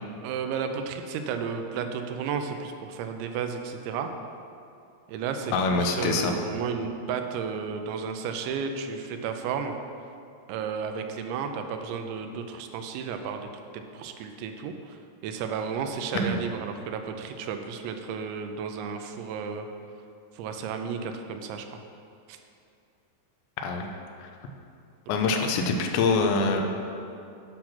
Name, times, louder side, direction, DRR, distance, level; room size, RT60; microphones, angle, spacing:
voice 1, 0.2-4.1 5.1-9.8 10.5-13.5 13.7-19.7 20.3-21.7 22.3-22.4 25.3-25.4, right 6 dB, 90° right, 6 dB, 3.0 m, -33 dB
voice 2, 5.5-6.4 16.1-16.4 23.6-23.9 24.2-24.3 25.1-26.6, left 4 dB, 90° left, 3 dB, 3.1 m, -25 dB
10.5 x 5.8 x 6.0 m, 2.5 s
omnidirectional pair, 5.1 m